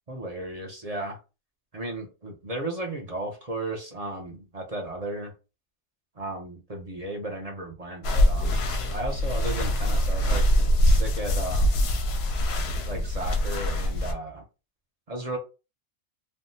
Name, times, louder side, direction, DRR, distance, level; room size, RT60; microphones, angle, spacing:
voice 1, 0.1-1.2 1.7-5.3 6.2-11.9 12.9-14.4 15.1-15.4, right 2 dB, 40° right, 1 dB, 0.6 m, -35 dB
sound 1, 8.0-14.1, equal, 60° left, 0.7 m, -23 dB
3.5 x 2.2 x 2.7 m, 0.31 s
omnidirectional pair, 1.4 m